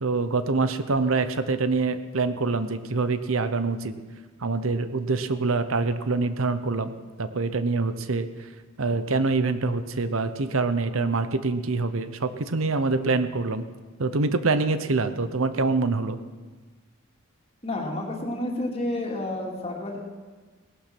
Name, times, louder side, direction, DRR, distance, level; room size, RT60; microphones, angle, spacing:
voice 1, 0.0-3.9 4.4-8.5 8.8-13.6 14.0-16.2, right 3 dB, 70° right, 11 dB, 0.8 m, -25 dB
voice 2, 17.6-20.0, left 1 dB, 30° left, 0 dB, 2.6 m, -30 dB
18.0 x 11.5 x 6.1 m, 1.3 s
head